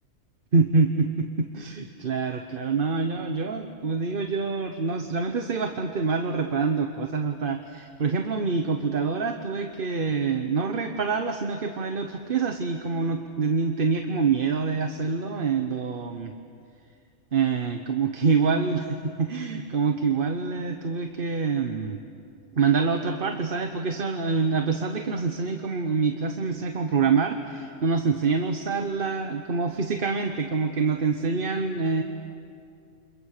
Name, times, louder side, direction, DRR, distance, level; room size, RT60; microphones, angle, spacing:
voice 1, 0.5-16.3 17.3-22.0 22.5-32.0, right 5 dB, 45° right, 5 dB, 1.2 m, -26 dB
29.5 x 27.5 x 6.7 m, 2.4 s
omnidirectional pair, 1.4 m